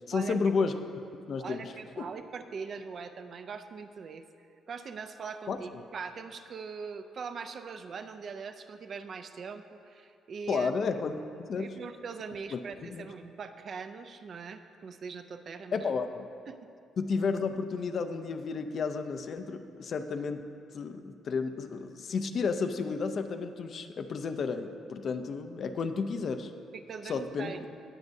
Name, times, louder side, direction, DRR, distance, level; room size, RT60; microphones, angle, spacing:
voice 1, 0.1-0.7 1.3-1.7 2.0-2.1 5.5-5.6 10.5-11.1 11.4-11.7 12.5-13.1 15.7-16.2 17.0-20.4 20.7-26.5 27.1-27.5, left 5 dB, 40° left, 8 dB, 0.5 m, -32 dB
voice 2, 1.4-4.2 4.7-10.7 11.2-11.3 11.6-15.9 16.5-16.6 26.7-27.7, right 5 dB, 40° right, 8 dB, 0.4 m, -41 dB
19.0 x 7.4 x 2.7 m, 2.5 s
cardioid pair, 160°, 0 cm